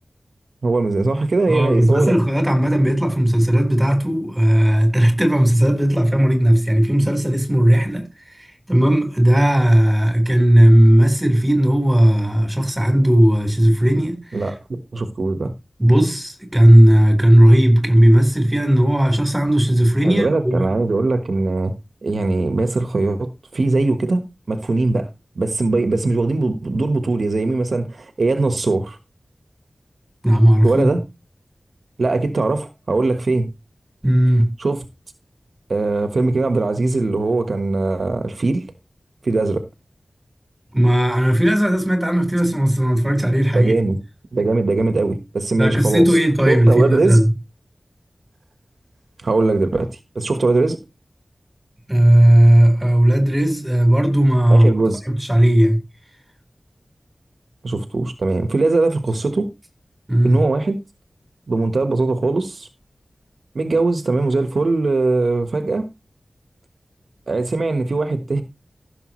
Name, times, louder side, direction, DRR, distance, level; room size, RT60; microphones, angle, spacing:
voice 1, 0.6-2.1 14.3-15.5 20.0-21.7 22.0-25.1 25.3-29.0 30.6-31.0 32.0-33.5 34.6-34.8 35.7-38.7 39.2-39.6 43.5-44.0 44.3-46.1 46.5-47.2 49.2-50.8 54.5-55.0 57.6-59.5 60.2-60.8 61.5-62.7 63.5-65.9 67.3-68.4, right 3 dB, 75° right, 1.3 m, -20 dB
voice 2, 1.5-8.0 8.4-14.2 15.8-20.7 30.2-30.8 34.0-34.5 40.7-43.7 45.6-47.2 51.9-54.7 55.1-55.8 60.1-60.4, right 1 dB, 10° right, 4.2 m, -15 dB
15.5 x 7.0 x 3.1 m
wide cardioid pair, 80°, 0 cm